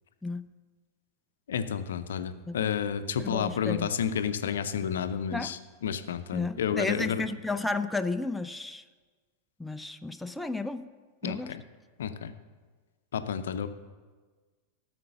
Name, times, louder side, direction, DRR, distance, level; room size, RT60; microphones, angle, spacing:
voice 1, 1.5-7.2 11.2-11.6 12.0-12.3 13.1-13.7, left 8 dB, 65° left, 11 dB, 0.6 m, -31 dB
voice 2, 3.2-3.9 5.3-5.5 6.3-8.8 9.6-10.9 11.2-11.5, left 3 dB, 5° left, 9 dB, 0.4 m, -32 dB
13.0 x 5.8 x 6.8 m, 1.4 s
figure-of-eight pair, 90°, 0 cm